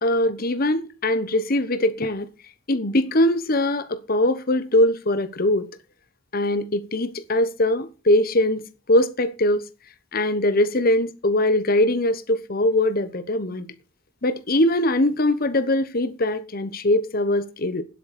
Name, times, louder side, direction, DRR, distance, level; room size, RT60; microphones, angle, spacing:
voice 1, 0.0-2.3 2.7-5.7 6.3-9.6 10.1-13.7 14.2-17.8, left 1 dB, 45° left, 1.1 m, -22 dB
10.0 x 8.2 x 6.7 m
head